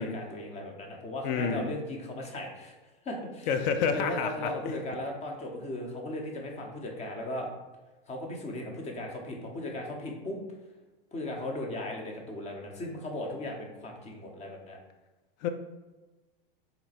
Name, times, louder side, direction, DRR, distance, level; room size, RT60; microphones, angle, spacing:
voice 1, 0.0-2.7 3.0-3.5 3.9-7.5 8.1-10.4 11.1-14.8, left 1 dB, 20° left, 1 dB, 0.8 m, -37 dB
voice 2, 1.2-1.7 3.5-4.7 15.4-15.5, left 6 dB, 50° left, 8 dB, 0.5 m, -29 dB
4.0 x 2.1 x 4.1 m, 1.1 s
hypercardioid pair, 110°, 30 cm